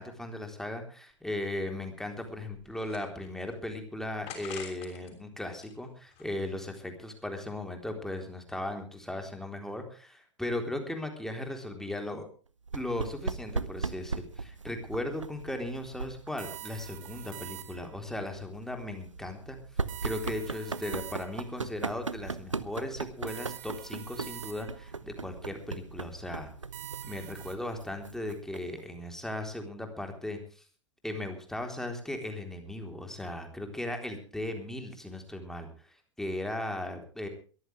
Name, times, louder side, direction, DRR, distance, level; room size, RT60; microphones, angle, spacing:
voice 1, 0.0-12.2 12.7-26.5 27.0-30.7 31.0-37.3, left 1 dB, 5° left, 4 dB, 3.8 m, -37 dB
sound 1, 1.1-1.2 1.5-1.6 2.2-3.5 4.3-5.1 5.5-6.7, left 8 dB, 40° left, 6.4 m, -46 dB
sound 2, 12.7-28.8, right 4 dB, 85° right, 0.8 m, -39 dB
sound 3, 16.4-18.0 19.9-21.5 23.3-24.9 26.7-27.6, right 16 dB, 50° right, 2.0 m, -45 dB
22.0 x 14.5 x 3.4 m, 0.38 s
figure-of-eight pair, 90°, 16 cm